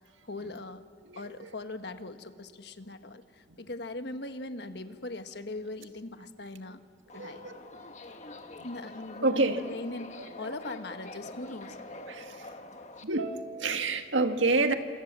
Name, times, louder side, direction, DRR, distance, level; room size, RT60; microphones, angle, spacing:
voice 1, 0.2-0.8 1.1-6.8 7.1-7.4 8.6-11.8, left 2 dB, 60° left, 8 dB, 1.4 m, -40 dB
voice 2, 1.1-1.5 7.1-7.6 8.6-8.7 9.2-9.6 12.1-12.5 13.0-14.7, right 3 dB, 80° right, 6 dB, 1.9 m, -28 dB
Subway metro underground, 7.1-13.0, left 2 dB, 40° left, 1.4 m, -45 dB
28.5 x 27.5 x 7.6 m, 2.3 s
head